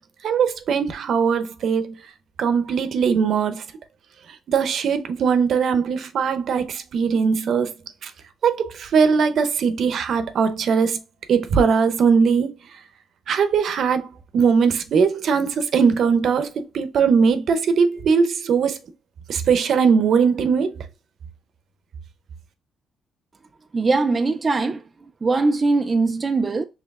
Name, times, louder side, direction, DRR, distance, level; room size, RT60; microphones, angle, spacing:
voice 1, 0.2-2.0 2.4-3.7 4.5-7.7 8.0-8.1 8.4-11.0 11.3-12.5 13.3-14.1 14.3-18.8 19.3-20.7, right 6 dB, 65° right, 0.7 m, -20 dB
voice 2, 23.7-24.8 25.2-26.7, right 3 dB, 30° right, 0.3 m, -21 dB
5.2 x 3.0 x 2.3 m
cardioid pair, 90°, 0 cm